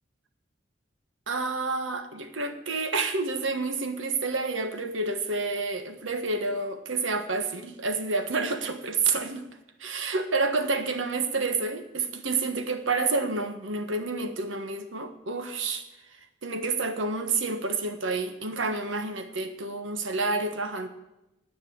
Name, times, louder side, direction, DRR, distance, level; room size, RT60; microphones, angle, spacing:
voice 1, 1.3-9.4 9.8-15.8 16.4-20.9, right 3 dB, 85° right, 8 dB, 1.4 m, -29 dB
10.0 x 8.7 x 8.8 m, 0.94 s
head